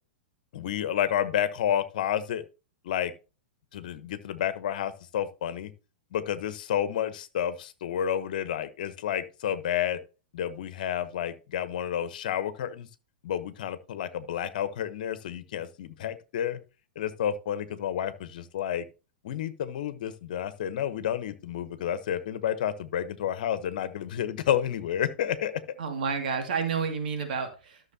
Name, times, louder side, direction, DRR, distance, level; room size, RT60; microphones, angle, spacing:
voice 1, 0.5-2.4 2.8-3.1 3.7-5.7 6.1-10.0 10.3-12.9 13.2-16.6 17.0-18.8 19.2-25.6, left 10 dB, 60° left, 1.0 m, -30 dB
voice 2, 25.8-27.9, right 6 dB, 65° right, 2.2 m, -30 dB
13.5 x 6.3 x 2.8 m
figure-of-eight pair, 105°, 5 cm